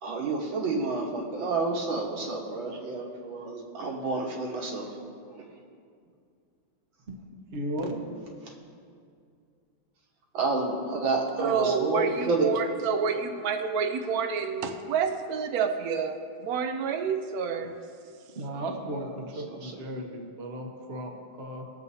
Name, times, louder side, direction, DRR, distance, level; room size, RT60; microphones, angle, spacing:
voice 1, 0.0-4.9 8.5-8.6 10.3-12.5 18.5-18.6 19.5-19.7, right 3 dB, 65° right, 0 dB, 2.0 m, -29 dB
voice 2, 7.5-8.0 18.4-21.7, right 1 dB, 35° right, 1 dB, 1.1 m, -35 dB
voice 3, 11.4-16.2 16.4-17.7, right 6 dB, 85° right, 6 dB, 0.8 m, -28 dB
21.5 x 7.3 x 2.7 m, 2.3 s
omnidirectional pair, 2.4 m